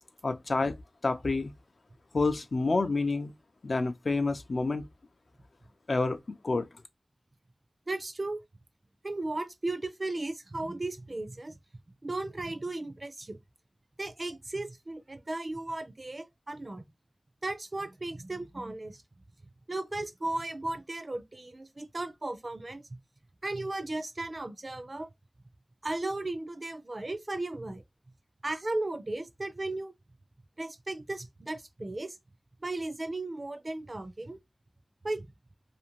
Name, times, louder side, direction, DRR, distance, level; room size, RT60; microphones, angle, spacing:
voice 1, 0.2-0.8 1.0-1.5 2.1-3.3 3.6-4.9 5.9-6.7, left 3 dB, 70° left, 0.4 m, -28 dB
voice 2, 7.9-8.4 9.0-11.6 12.0-13.4 14.0-16.9 17.4-19.0 19.7-23.0 23.4-25.1 25.8-27.8 28.4-29.9 30.6-32.2 32.6-34.4 35.0-35.3, right 2 dB, 45° right, 0.4 m, -35 dB
2.5 x 2.5 x 2.9 m
wide cardioid pair, 60°, 0 cm